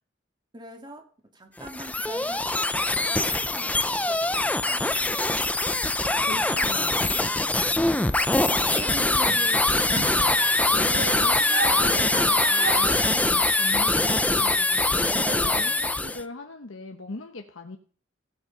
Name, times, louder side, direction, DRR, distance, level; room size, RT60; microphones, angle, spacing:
voice 1, 0.5-1.0 1.3-5.3 6.1-7.0 7.3-10.0 15.1-15.8, right 2 dB, 25° right, 3 dB, 2.3 m, -43 dB
sound 1, 1.6-16.2, left 2 dB, 5° left, 0.5 m, -23 dB
voice 2, 5.9-7.2 8.4-9.6 10.7-17.8, left 2 dB, 75° left, 3 dB, 1.2 m, -40 dB
sound 2, 8.4-13.6, right 4 dB, 65° right, 1.4 m, -34 dB
16.5 x 8.2 x 5.2 m, 0.42 s
head